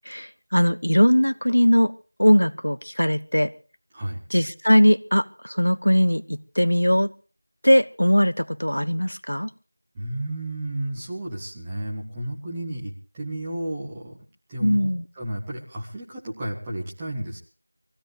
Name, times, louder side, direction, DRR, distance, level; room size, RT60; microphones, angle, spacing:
voice 1, 0.1-1.9 2.2-3.5 4.3-7.1 7.6-9.5 14.6-15.0, equal, 85° left, 1.0 m, -20 dB
voice 2, 9.9-14.2 14.5-14.9 15.2-17.4, right 1 dB, 5° right, 1.3 m, -32 dB
24.0 x 16.0 x 3.3 m
figure-of-eight pair, 175°, 0 cm